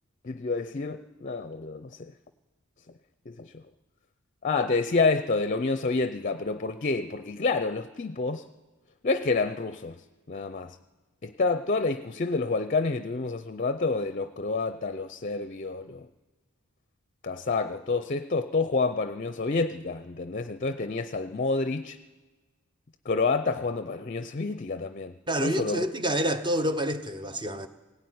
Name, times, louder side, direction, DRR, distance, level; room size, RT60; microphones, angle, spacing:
voice 1, 0.2-2.1 3.3-3.6 4.4-8.4 9.0-10.0 10.3-10.8 11.2-16.1 17.2-22.0 23.1-25.8, left 3 dB, 40° left, 11 dB, 0.6 m, -28 dB
voice 2, 25.3-27.7, right 1 dB, 20° right, 9 dB, 1.0 m, -28 dB
18.5 x 16.0 x 9.5 m, 1.3 s
head